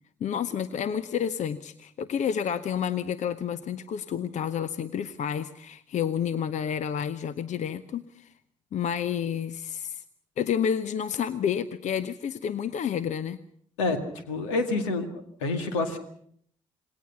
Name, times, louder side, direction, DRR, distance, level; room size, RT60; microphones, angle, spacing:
voice 1, 0.2-8.3 8.7-10.0 10.4-13.4, left 8 dB, 50° left, 15 dB, 0.9 m, -30 dB
voice 2, 14.3-16.0, left 3 dB, 75° left, 8 dB, 2.1 m, -28 dB
27.5 x 21.0 x 5.8 m, 0.64 s
figure-of-eight pair, 45°, 16 cm